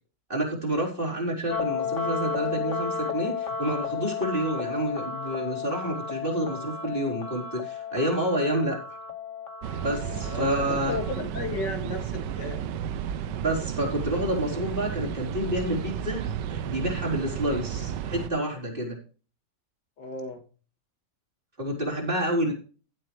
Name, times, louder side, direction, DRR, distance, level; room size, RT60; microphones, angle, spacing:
voice 1, 0.3-8.8 9.8-10.9 13.4-19.0 21.6-22.5, right 1 dB, 30° right, -1 dB, 4.6 m, -29 dB
sound 1, 1.5-11.2, left 5 dB, 45° left, 2.0 m, -33 dB
sound 2, 9.6-18.3, right 9 dB, 85° right, 1.4 m, -33 dB
voice 2, 10.2-12.6 20.0-20.4, left 2 dB, 85° left, 5 dB, 2.9 m, -33 dB
16.0 x 7.6 x 3.2 m, 0.37 s
omnidirectional pair, 1.8 m